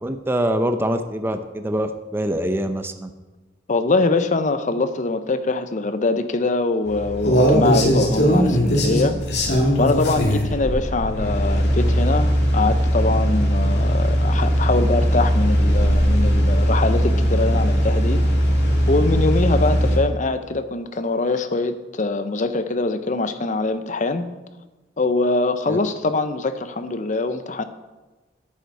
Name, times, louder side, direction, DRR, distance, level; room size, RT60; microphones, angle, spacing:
voice 1, 0.0-3.1 25.7-25.8, right 1 dB, 15° right, 8 dB, 0.5 m, -24 dB
voice 2, 3.7-9.2 9.8-18.2 18.9-24.3 25.0-27.6, left 3 dB, 45° left, 10 dB, 0.7 m, -23 dB
sound 1, 6.9-20.0, equal, 65° left, 2.0 m, -19 dB
10.5 x 8.2 x 4.7 m, 1.2 s
head